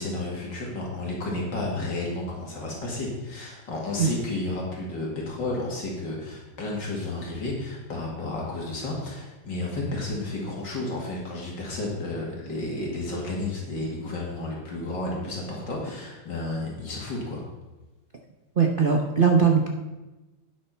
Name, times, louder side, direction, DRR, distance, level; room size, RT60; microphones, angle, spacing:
voice 1, 0.0-17.4, left 2 dB, 65° left, -3 dB, 2.7 m, -32 dB
voice 2, 18.6-19.7, right 6 dB, 65° right, 1 dB, 0.5 m, -20 dB
9.3 x 7.7 x 5.6 m, 1.1 s
omnidirectional pair, 2.1 m